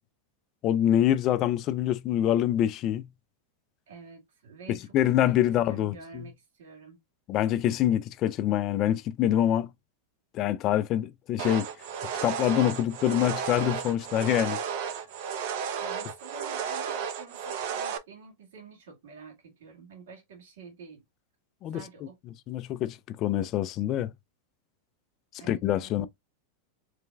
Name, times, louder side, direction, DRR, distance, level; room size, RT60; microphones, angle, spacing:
voice 1, 0.6-3.1 4.7-6.2 7.3-9.7 10.3-11.7 12.2-14.6 21.6-21.8 22.5-24.1 25.4-26.1, left 11 dB, 30° left, 0.4 m, -25 dB
voice 2, 3.9-5.0 5.2-7.0 15.8-21.0 21.7-22.2 25.4-25.9, right 5 dB, 75° right, 2.0 m, -48 dB
sound 1, 11.4-18.0, right 7 dB, 45° right, 0.6 m, -33 dB
4.9 x 3.3 x 2.2 m
supercardioid pair, 170°, 0 cm